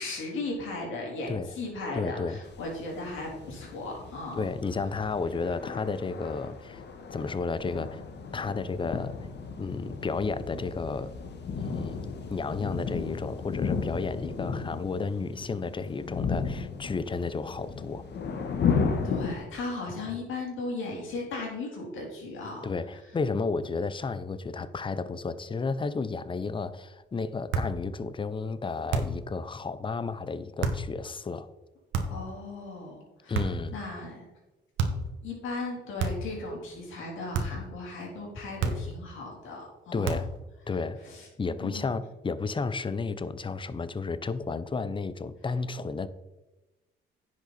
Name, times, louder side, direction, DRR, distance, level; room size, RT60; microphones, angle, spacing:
voice 1, 0.0-4.4 19.0-22.6 32.1-33.4 33.7-34.2 35.2-40.2 41.0-41.3 41.6-41.9, left 2 dB, 80° left, 3.6 m, -37 dB
voice 2, 1.9-2.4 4.3-6.8 7.1-8.0 8.3-9.3 9.6-11.1 11.6-12.0 12.3-18.0 22.6-31.5 33.3-33.8 39.9-40.3 40.7-41.0 41.4-46.1, left 4 dB, 25° left, 0.7 m, -32 dB
sound 1, 2.4-19.4, left 5 dB, 60° left, 1.4 m, -34 dB
sound 2, 27.5-27.8 28.9-29.3 30.6-30.9 31.9-32.3 33.3-33.7 34.8-35.1 36.0-36.4 37.3-37.7 38.6-39.0 40.0-40.4, right 4 dB, 80° right, 1.3 m, -30 dB
10.5 x 6.5 x 4.2 m
cardioid pair, 90°, 20 cm